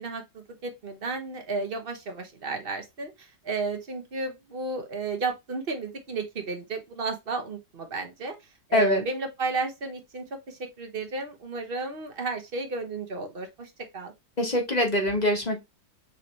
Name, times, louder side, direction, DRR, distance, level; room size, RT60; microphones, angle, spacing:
voice 1, 0.0-8.4 8.7-14.1, right 3 dB, 40° right, 0.9 m, -33 dB
voice 2, 8.7-9.0 14.4-15.6, left 1 dB, 30° left, 1.1 m, -24 dB
6.1 x 2.8 x 3.1 m
omnidirectional pair, 1.9 m